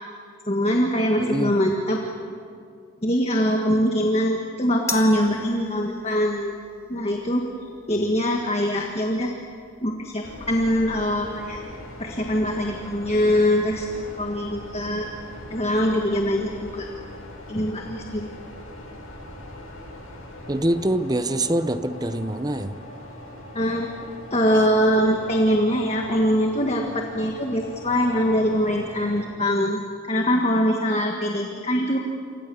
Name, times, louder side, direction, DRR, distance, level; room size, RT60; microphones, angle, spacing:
voice 1, 0.5-2.0 3.0-6.6 6.9-7.4 7.9-9.3 9.8-11.6 12.0-13.9 14.2-15.1 15.5-16.9 17.5-18.3 23.5-23.9 24.3-32.0, equal, 30° left, 2 dB, 1.7 m, -23 dB
voice 2, 1.2-1.6 20.5-22.8, right 1 dB, 20° right, 11 dB, 0.8 m, -24 dB
sound 1, 4.9-11.4, left 2 dB, 15° left, 1.6 m, -41 dB
sound 2, 10.2-29.2, left 1 dB, 80° left, 8.0 m, -41 dB
28.5 x 25.5 x 7.1 m, 2.4 s
head